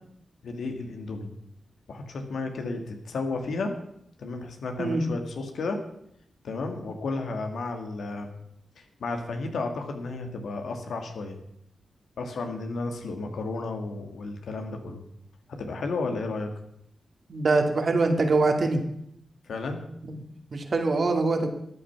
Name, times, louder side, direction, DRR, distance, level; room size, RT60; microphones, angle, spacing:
voice 1, 0.4-1.3 1.9-3.7 4.2-5.8 6.4-8.3 8.8-11.4 12.2-15.0 15.6-16.5 19.5-19.8, left 3 dB, 80° left, 5 dB, 2.0 m, -33 dB
voice 2, 17.3-18.8 20.1-20.2 20.5-21.5, right 3 dB, 60° right, 5 dB, 2.2 m, -23 dB
13.5 x 9.2 x 5.9 m, 0.75 s
cardioid pair, 50°, 0 cm